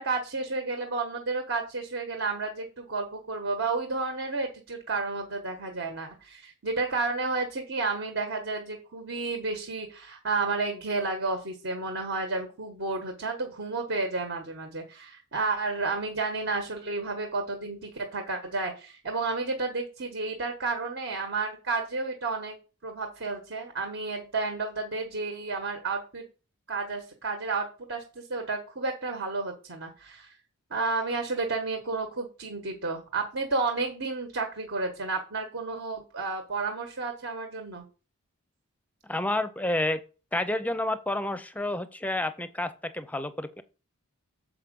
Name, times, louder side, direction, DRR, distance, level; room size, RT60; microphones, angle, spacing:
voice 1, 0.0-22.6 22.8-26.3 26.7-30.4 30.7-37.8, right 3 dB, 60° right, 4 dB, 1.3 m, -31 dB
voice 2, 39.1-40.0 40.3-43.6, left 1 dB, 5° left, 12 dB, 0.5 m, -29 dB
7.2 x 5.0 x 5.2 m, 0.34 s
head